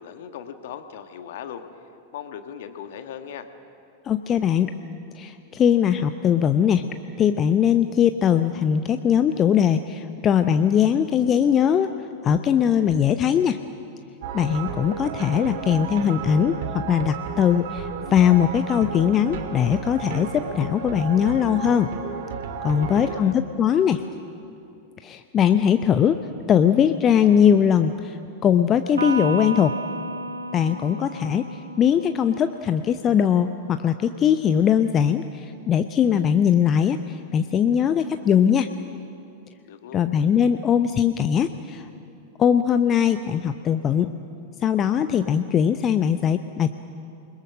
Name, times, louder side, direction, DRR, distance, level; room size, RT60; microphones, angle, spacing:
voice 1, 0.0-1.6 2.1-3.5 22.7-23.4 39.7-40.1, left 9 dB, 55° left, 8 dB, 1.5 m, -38 dB
voice 2, 4.0-4.7 5.2-6.8 7.2-11.9 12.2-13.6 14.3-21.9 22.6-24.0 25.0-26.2 26.5-29.7 30.5-38.7 39.9-41.9 42.4-44.1 44.6-46.8, left 8 dB, 25° left, 9 dB, 0.7 m, -20 dB
sound 1, 14.2-23.2, right 7 dB, 50° right, 1.8 m, -33 dB
Electric guitar, 29.0-32.5, right 2 dB, 75° right, 1.1 m, -31 dB
28.0 x 21.0 x 6.4 m, 2.7 s
figure-of-eight pair, 90°, 0 cm